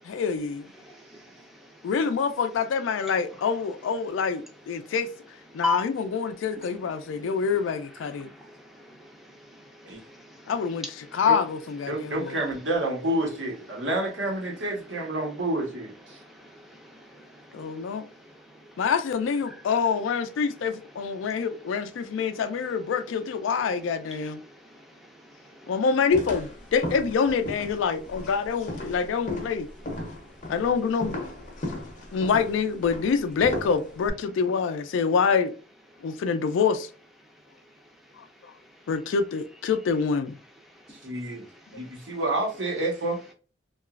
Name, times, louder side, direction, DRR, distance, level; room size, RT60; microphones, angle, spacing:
voice 1, 0.0-0.7 1.8-5.1 5.5-8.3 10.5-12.4 17.5-18.1 18.8-24.4 25.7-29.7 30.5-31.2 32.1-35.5 36.0-36.9 38.2-38.3 38.9-40.4, left 5 dB, 85° left, 0.3 m, -26 dB
voice 2, 0.7-1.6 3.3-3.9 5.6-5.8 6.5-8.4 8.7-13.7 13.9-17.6 18.9-19.0 19.3-20.1 20.3-20.6 20.9-21.3 21.9-22.5 23.5-23.7 24.0-24.4 24.7-24.8 25.5-26.2 26.6-26.7, left 2 dB, ahead, 0.5 m, -41 dB
voice 3, 11.9-16.2 41.0-41.5 41.7-43.2, right 1 dB, 75° right, 1.0 m, -29 dB
sound 1, 26.1-34.1, left 1 dB, 40° left, 0.6 m, -36 dB
2.9 x 2.3 x 2.3 m
head